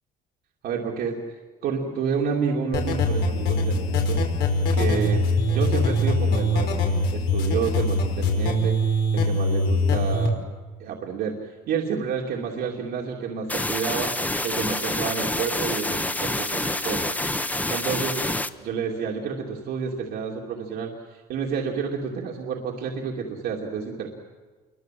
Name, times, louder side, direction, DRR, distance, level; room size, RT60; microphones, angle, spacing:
voice 1, 0.6-1.2 1.6-4.2 4.7-5.2 5.5-6.8 7.1-10.4 10.8-14.1 14.4-17.0 17.7-24.1, right 6 dB, 70° right, -1 dB, 2.9 m, -29 dB
sound 1, 2.7-10.3, left 1 dB, 80° left, 5.5 m, -23 dB
independent pink noise flange, 13.5-18.5, left 1 dB, 10° left, 1.3 m, -27 dB
29.0 x 23.5 x 7.8 m, 1.5 s
cardioid pair, 110°, 17 cm